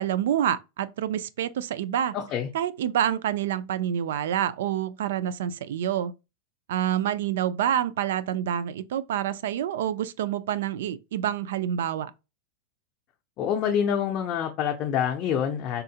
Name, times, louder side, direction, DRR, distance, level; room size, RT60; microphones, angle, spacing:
voice 1, 0.0-2.2 2.5-6.1 6.7-12.1, right 10 dB, 80° right, 0.4 m, -27 dB
voice 2, 2.1-2.5 13.4-15.8, left 8 dB, 35° left, 0.5 m, -26 dB
3.6 x 2.1 x 2.7 m
supercardioid pair, 150°, 0 cm